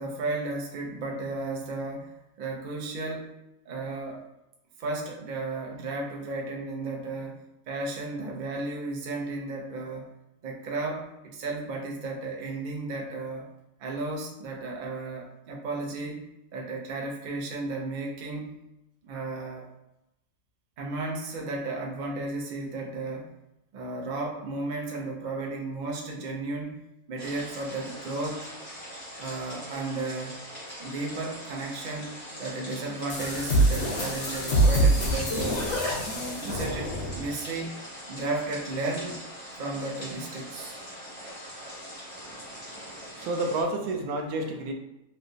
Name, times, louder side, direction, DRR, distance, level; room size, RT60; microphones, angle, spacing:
voice 1, 0.0-3.4 3.7-4.2 4.8-10.0 10.4-13.5 13.8-16.3 16.5-18.6 19.0-19.7 20.8-23.3 23.7-28.5 29.2-30.4 30.8-35.6 36.1-37.8 38.1-39.2 39.6-40.8, right 2 dB, 50° right, -1 dB, 0.5 m, -34 dB
sound 1, 27.2-43.6, equal, 25° left, 1.5 m, -42 dB
sound 2, 33.1-37.3, right 1 dB, 55° left, 1.1 m, -25 dB
voice 2, 42.2-44.7, right 2 dB, 85° right, 4 dB, 1.1 m, -31 dB
3.2 x 2.8 x 2.7 m, 0.89 s
omnidirectional pair, 1.5 m